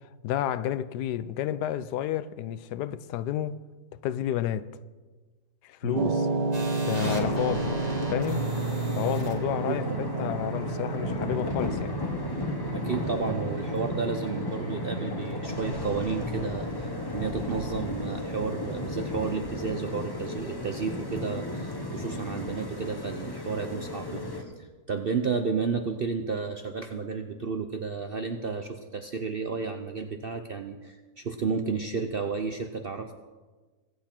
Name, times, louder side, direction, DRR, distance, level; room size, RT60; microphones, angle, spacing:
voice 1, 0.2-3.6 4.0-4.7 5.6-6.3 6.9-7.8 8.1-8.5 9.0-12.0, left 11 dB, 80° left, 1.2 m, -30 dB
sound 1, 6.0-24.2, right 3 dB, 85° right, 1.7 m, -34 dB
sound 2, 6.5-19.4, right 3 dB, 25° right, 1.6 m, -41 dB
sound 3, 7.0-24.4, left 2 dB, 15° left, 1.0 m, -34 dB
voice 2, 9.7-10.0 12.7-33.1, right 5 dB, 55° right, 0.6 m, -32 dB
23.5 x 8.2 x 4.4 m
omnidirectional pair, 1.7 m